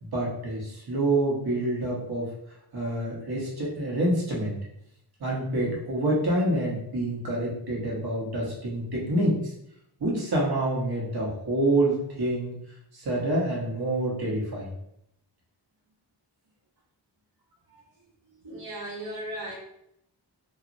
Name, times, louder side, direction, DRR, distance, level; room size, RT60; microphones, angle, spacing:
voice 1, 0.0-2.3 2.7-4.6 5.2-9.4 10.0-12.5 12.9-14.7, right 1 dB, 55° right, -4 dB, 1.0 m, -27 dB
voice 2, 18.4-19.6, right 1 dB, 85° right, -4 dB, 0.9 m, -36 dB
2.9 x 2.4 x 2.5 m, 0.76 s
wide cardioid pair, 90°, 45 cm